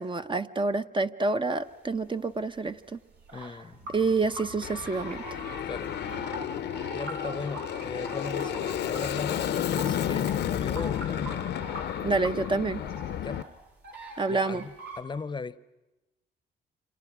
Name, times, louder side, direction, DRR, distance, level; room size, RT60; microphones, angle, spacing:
voice 1, 0.0-3.0 3.9-5.4 12.0-12.8 14.2-14.6, right 3 dB, 25° right, 9 dB, 0.8 m, -28 dB
sound 1, 1.7-2.1 2.5-3.6 3.8-3.9 4.2-15.0, right 2 dB, 70° right, 5.6 m, -44 dB
voice 2, 3.3-3.8 5.6-5.9 6.9-11.4 13.2-13.5 13.9-15.6, left 4 dB, 25° left, 17 dB, 0.8 m, -37 dB
sound 2, 3.7-12.5, right 1 dB, 90° right, 7.9 m, -44 dB
Aircraft, 4.6-13.4, left 11 dB, 70° left, 0.8 m, -32 dB
29.0 x 26.5 x 6.2 m, 1.0 s
cardioid pair, 95°, 18 cm